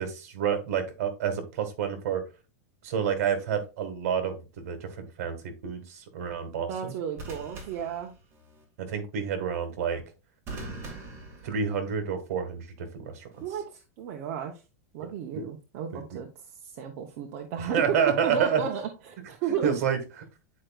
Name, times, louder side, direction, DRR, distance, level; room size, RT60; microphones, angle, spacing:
voice 1, 0.0-2.2 2.8-5.4 5.6-6.9 8.8-10.0 11.4-13.3 15.0-15.1 15.3-15.4 15.9-16.2 17.7-18.6 19.6-20.0, right 7 dB, 65° right, 7 dB, 1.7 m, -29 dB
sound 1, 3.3-3.6 7.2-8.6 10.5-12.1 13.3-13.6, right 2 dB, 30° right, 2.0 m, -43 dB
voice 2, 6.7-8.1 13.4-14.6 14.9-16.3 16.6-17.8 18.2-19.8, right 8 dB, 45° right, 2 dB, 0.9 m, -33 dB
9.6 x 4.6 x 2.4 m, 0.30 s
supercardioid pair, 150°, 9 cm